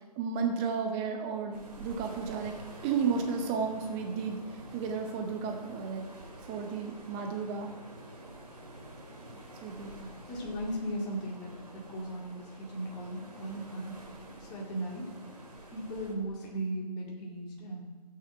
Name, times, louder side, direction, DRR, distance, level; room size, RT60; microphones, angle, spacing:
voice 1, 0.2-2.5 2.8-6.0 6.5-7.7 9.3-10.0, right 5 dB, 20° right, 4 dB, 0.8 m, -33 dB
sound 1, 1.5-16.1, right 1 dB, 70° right, 3.0 m, -48 dB
voice 2, 9.8-14.0 14.4-15.5 15.7-17.8, right 1 dB, 20° left, -2 dB, 2.1 m, -37 dB
11.5 x 8.6 x 4.9 m, 1.3 s
figure-of-eight pair, 135°, 21 cm